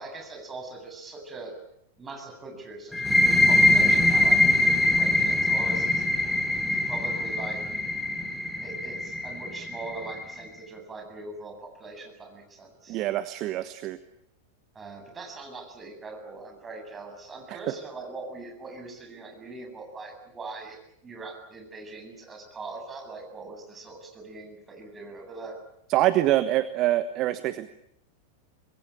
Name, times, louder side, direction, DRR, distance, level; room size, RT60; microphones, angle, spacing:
voice 1, 0.0-1.5 2.0-7.6 8.6-13.0 14.7-25.6, right 3 dB, 20° right, 3 dB, 8.0 m, -41 dB
sound 1, 2.9-10.4, left 2 dB, 5° left, 3.6 m, -23 dB
voice 2, 12.9-14.0 17.5-17.6 25.9-27.7, right 14 dB, 40° right, 12 dB, 1.2 m, -25 dB
26.0 x 21.5 x 8.7 m, 0.75 s
figure-of-eight pair, 90°, 0 cm